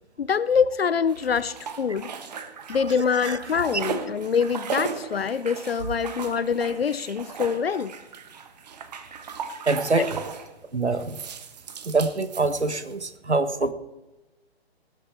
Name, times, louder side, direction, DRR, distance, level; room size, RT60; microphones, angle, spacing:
voice 1, 0.2-2.1 2.7-7.9 10.0-10.1, left 6 dB, 65° left, 0.8 m, -25 dB
sound 1, 1.1-3.0 3.3-10.5 11.0-13.0, right 6 dB, 40° right, 1.2 m, -37 dB
voice 2, 3.1-3.8 9.6-10.2 10.7-11.2 11.8-13.7, right 3 dB, 85° right, 1.3 m, -25 dB
19.0 x 8.5 x 4.6 m
figure-of-eight pair, 140°, 33 cm